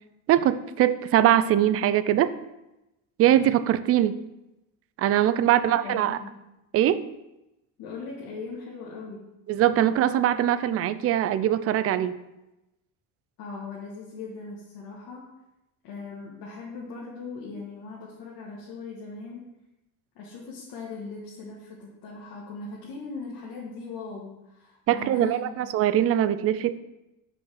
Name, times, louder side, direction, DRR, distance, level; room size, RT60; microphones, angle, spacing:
voice 1, 0.3-2.3 3.2-4.1 5.0-6.2 6.7-7.0 9.5-12.2 24.9-26.8, right 11 dB, 40° right, 13 dB, 0.4 m, -22 dB
voice 2, 5.4-6.4 7.8-9.3 13.4-15.3 15.8-19.4 20.1-25.9, left 4 dB, 70° left, -4 dB, 1.6 m, -39 dB
5.6 x 5.2 x 6.3 m, 0.94 s
cardioid pair, 135°, 37 cm